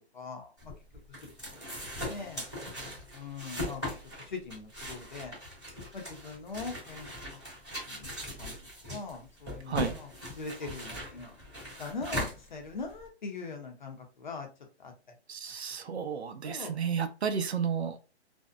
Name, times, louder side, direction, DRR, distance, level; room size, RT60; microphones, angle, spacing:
voice 1, 0.1-0.7 1.5-1.8 2.1-2.4 3.1-3.8 4.3-5.3 5.9-7.4 7.9-8.1 8.4-8.5 8.9-11.3 11.8-14.5 14.8-14.9 16.4-16.7, left 4 dB, 45° left, 3 dB, 0.7 m, -41 dB
sound 1, 0.6-13.1, left 1 dB, 5° left, 0.6 m, -39 dB
voice 2, 9.7-10.0 12.1-12.2 15.3-18.0, right 7 dB, 70° right, 9 dB, 0.6 m, -32 dB
2.5 x 2.0 x 2.4 m, 0.32 s
hypercardioid pair, 170°, 34 cm